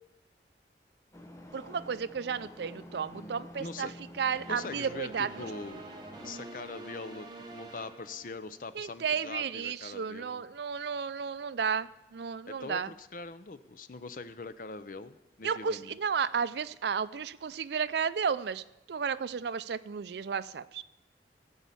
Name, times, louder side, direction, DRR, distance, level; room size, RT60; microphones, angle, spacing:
sound 1, 1.1-6.3, equal, 15° left, 0.9 m, -49 dB
voice 1, 1.5-3.9 4.2-5.5 8.7-12.9 15.4-20.8, right 6 dB, 70° right, 16 dB, 0.4 m, -33 dB
voice 2, 3.1-3.9 4.5-5.8 6.2-10.4 12.5-16.0, left 3 dB, 50° left, 12 dB, 0.6 m, -43 dB
sound 2, 4.3-8.8, right 2 dB, 25° right, 1.1 m, -47 dB
16.5 x 5.6 x 8.3 m, 0.96 s
head